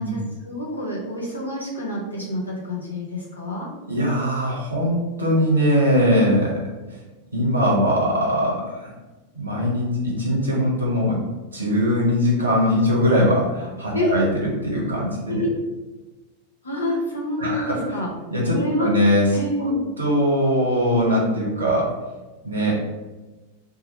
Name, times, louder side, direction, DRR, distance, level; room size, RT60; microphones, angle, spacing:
voice 1, 0.0-3.7 6.1-6.3 13.9-14.1 15.3-15.5 16.6-18.1 18.4-18.9 19.3-19.8, left 1 dB, 80° left, -4 dB, 0.9 m, -27 dB
voice 2, 3.9-6.5 7.3-8.9 9.3-11.2 11.5-15.4 17.4-17.7 18.3-19.4 20.0-21.9 22.4-22.7, equal, 75° right, -3 dB, 0.8 m, -21 dB
2.9 x 2.2 x 4.1 m, 1.2 s
figure-of-eight pair, 90°, 0 cm